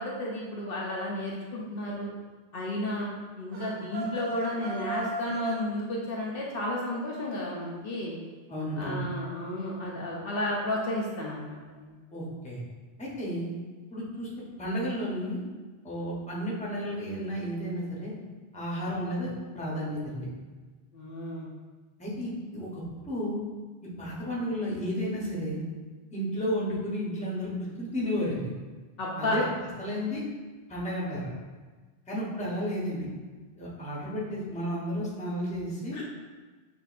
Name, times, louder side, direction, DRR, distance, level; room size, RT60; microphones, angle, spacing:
voice 1, 0.0-2.1 2.5-3.1 3.4-8.2 8.8-11.9 20.9-21.5 29.0-29.4 35.9-36.0, left 1 dB, 65° left, -3 dB, 0.8 m, -32 dB
sound 1, 3.5-5.7, right 2 dB, 65° right, 0.8 m, -35 dB
voice 2, 8.5-9.0 12.1-12.6 13.0-13.5 13.9-14.3 14.6-15.4 15.8-18.1 18.5-20.3 22.0-23.4 24.0-25.6 26.1-27.5 27.8-28.5 29.2-29.5 29.8-30.2 30.7-31.3 32.1-33.1 33.6-36.0, equal, 5° left, -6 dB, 0.7 m, -32 dB
6.1 x 2.5 x 2.4 m, 1.4 s
omnidirectional pair, 1.1 m